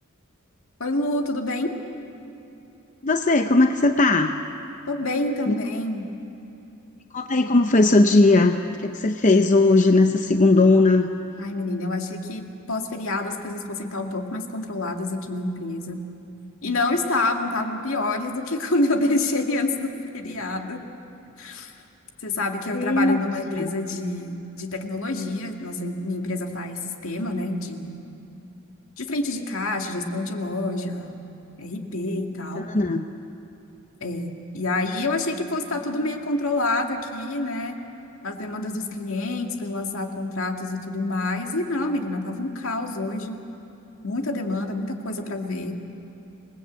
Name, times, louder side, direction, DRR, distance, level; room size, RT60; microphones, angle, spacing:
voice 1, 0.8-1.8 4.9-6.1 11.4-16.0 16.6-20.8 21.4-21.7 22.2-28.0 29.0-31.3 31.6-32.7 34.0-37.8 38.2-43.4 44.0-45.8, left 2 dB, 70° left, 3 dB, 2.2 m, -27 dB
voice 2, 3.0-4.4 5.5-5.6 7.1-11.1 22.7-23.2 23.5-23.8 32.6-33.0, left 2 dB, 35° left, 6 dB, 0.7 m, -18 dB
27.0 x 20.0 x 8.2 m, 2.9 s
head